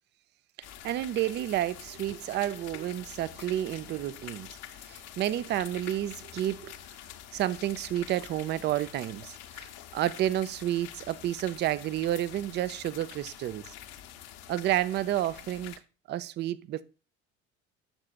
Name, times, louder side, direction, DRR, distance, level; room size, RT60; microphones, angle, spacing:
sound 1, 0.6-15.8, left 11 dB, 50° left, 0.8 m, -46 dB
voice 1, 0.6-4.5 4.8-6.8 7.3-13.7 14.5-15.8 16.1-16.8, right 13 dB, 35° right, 0.4 m, -30 dB
8.7 x 6.5 x 2.3 m
figure-of-eight pair, 55°, 33 cm